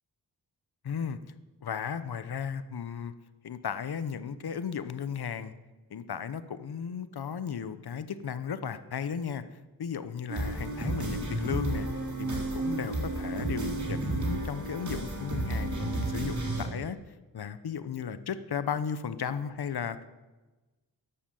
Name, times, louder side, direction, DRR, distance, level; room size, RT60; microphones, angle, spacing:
voice 1, 0.8-1.2 1.6-3.1 3.4-5.5 5.9-9.4 9.8-11.9 12.2-17.0 17.3-20.0, left 7 dB, 65° left, 13 dB, 1.0 m, -35 dB
sound 1, 10.3-16.7, right 2 dB, 45° right, 3.8 m, -32 dB
13.0 x 11.5 x 7.7 m, 1.2 s
wide cardioid pair, 105°, 41 cm